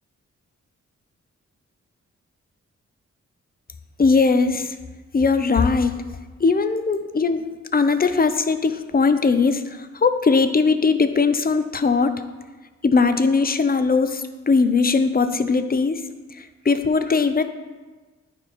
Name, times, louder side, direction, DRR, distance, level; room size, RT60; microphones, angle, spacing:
voice 1, 4.0-4.8 5.1-6.0 6.4-12.2 12.8-16.0 16.3-17.4, left 4 dB, 30° left, 10 dB, 0.6 m, -20 dB
9.4 x 4.5 x 4.3 m, 1.3 s
cardioid pair, 55°, 29 cm